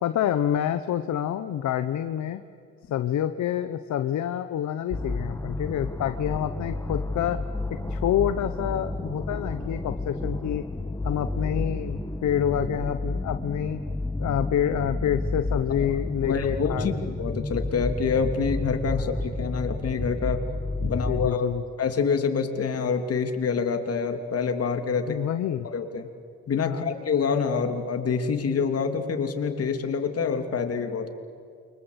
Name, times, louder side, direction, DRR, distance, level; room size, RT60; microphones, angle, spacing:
voice 1, 0.0-2.4 2.9-7.4 7.9-10.6 11.0-13.8 14.2-17.0 20.8-21.6 25.1-25.7 26.6-26.8, left 10 dB, 70° left, 10 dB, 1.1 m, -27 dB
sound 1, 4.9-21.3, left 2 dB, 10° left, 1.6 m, -31 dB
voice 2, 16.2-20.4 20.8-21.5 21.8-25.3 25.6-26.1 26.5-31.1, left 5 dB, 50° left, 6 dB, 3.1 m, -27 dB
29.0 x 24.5 x 8.3 m, 2.2 s
cardioid pair, 90°, 30 cm